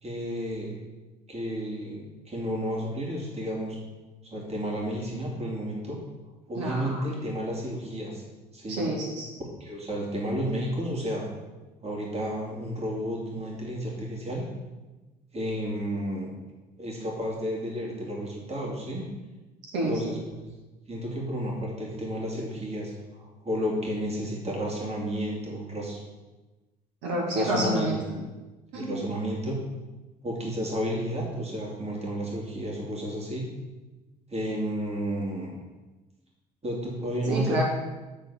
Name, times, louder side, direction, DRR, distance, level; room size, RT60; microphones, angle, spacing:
voice 1, 0.0-0.7 1.3-3.8 4.2-6.0 6.5-8.2 8.5-8.8 9.6-11.3 11.8-14.5 15.3-16.3 16.8-19.0 19.9-20.2 20.9-26.0 27.3-27.9 28.7-29.6 30.2-33.5 34.3-35.6 36.6-37.6, equal, 35° right, -2 dB, 2.9 m, -32 dB
voice 2, 6.6-7.1 8.7-9.3 19.7-20.1 27.0-28.0 28.7-28.9 37.3-37.6, right 1 dB, 70° right, -3 dB, 2.3 m, -28 dB
9.0 x 4.2 x 7.1 m, 1.2 s
hypercardioid pair, 55°, 19 cm